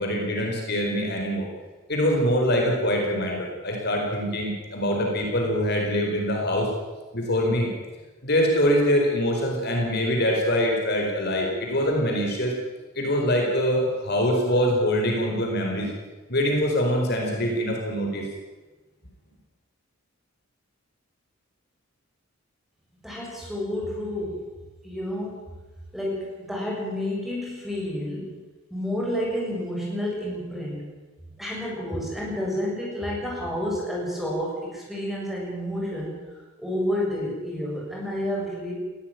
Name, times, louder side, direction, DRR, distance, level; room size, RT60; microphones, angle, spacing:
voice 1, 0.0-1.5 1.9-6.7 7.1-7.7 8.2-12.5 13.0-15.9 16.3-18.2, equal, 50° left, 1 dB, 4.4 m, -24 dB
voice 2, 23.0-24.4 24.8-25.4 25.9-28.3 28.7-30.8 31.4-36.2 36.6-38.7, left 1 dB, ahead, -3 dB, 7.1 m, -30 dB
20.5 x 16.5 x 9.1 m, 1.2 s
head